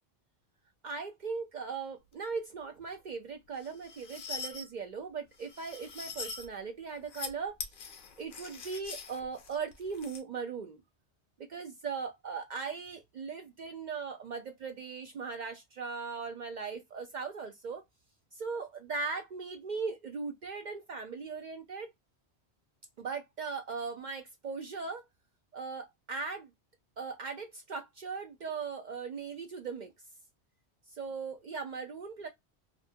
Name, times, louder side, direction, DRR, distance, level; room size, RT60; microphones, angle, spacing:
voice 1, 0.8-7.6 8.2-10.8 11.5-17.8 18.3-21.9 23.0-25.0 25.5-26.5 27.0-29.9 30.9-32.3, right 5 dB, 60° right, 0.5 m, -39 dB
sound 1, 3.6-4.7 5.4-6.5 7.0-7.3 7.6-10.2, left 5 dB, 55° left, 0.7 m, -43 dB
2.6 x 2.1 x 2.6 m
omnidirectional pair, 1.1 m